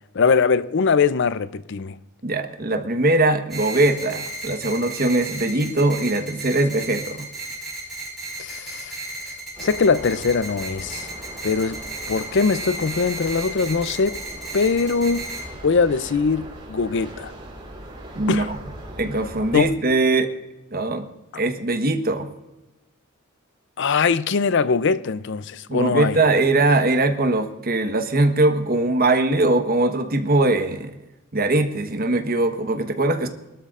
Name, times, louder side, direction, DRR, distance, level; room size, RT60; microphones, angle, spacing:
voice 1, 0.1-2.0 8.4-9.0 9.6-11.1 11.4-11.8 12.1-14.2 14.5-15.2 15.6-17.3 18.3-18.5 19.5-19.7 23.8-26.2, left 5 dB, 55° left, 0.5 m, -21 dB
voice 2, 2.2-7.3 18.2-18.6 19.0-20.3 20.7-21.0 21.3-22.3 25.7-30.9 31.3-33.3, right 2 dB, 45° right, 1.2 m, -21 dB
sound 1, 3.5-15.4, right 2 dB, ahead, 4.9 m, -34 dB
sound 2, 9.5-19.7, right 1 dB, 25° right, 3.4 m, -39 dB
21.5 x 12.5 x 2.5 m
head